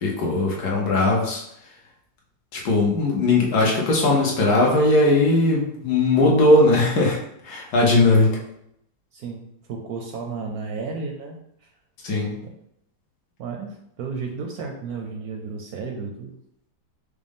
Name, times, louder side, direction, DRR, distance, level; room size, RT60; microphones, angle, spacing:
voice 1, 0.0-1.4 2.5-7.2 7.4-8.4 12.0-12.3, left 2 dB, 65° left, -2 dB, 1.4 m, -19 dB
voice 2, 9.1-9.4 9.7-11.7 12.1-12.6 13.4-16.4, right 4 dB, 70° right, 2 dB, 0.9 m, -33 dB
5.0 x 2.1 x 3.5 m, 0.74 s
omnidirectional pair, 1.9 m